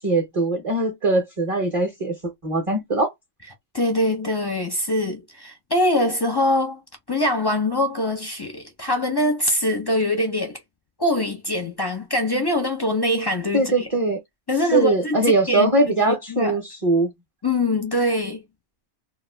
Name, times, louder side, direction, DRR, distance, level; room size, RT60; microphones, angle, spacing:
voice 1, 0.0-2.1 2.4-3.1 13.5-14.2 14.7-17.1, right 2 dB, 35° right, 0.6 m, -21 dB
voice 2, 3.7-6.8 7.1-10.6 11.0-13.9 14.5-15.7 16.1-16.6 17.4-18.4, left 1 dB, 30° left, 0.4 m, -23 dB
2.3 x 2.3 x 3.3 m
omnidirectional pair, 1.2 m